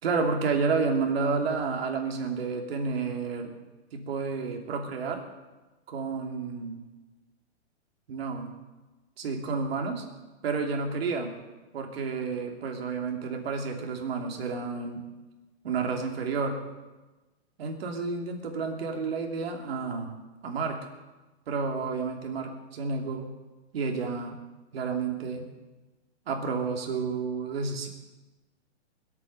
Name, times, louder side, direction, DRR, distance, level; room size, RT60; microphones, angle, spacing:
voice 1, 0.0-3.5 3.9-5.2 5.9-6.8 8.1-8.5 9.2-10.0 10.4-11.3 11.7-15.0 15.6-16.6 17.6-20.2 20.4-20.9 21.5-23.3 23.7-24.4 24.7-25.5 26.3-27.9, right 4 dB, 60° right, 2 dB, 3.0 m, -30 dB
21.5 x 8.6 x 6.9 m, 1.2 s
hypercardioid pair, 165°, 35 cm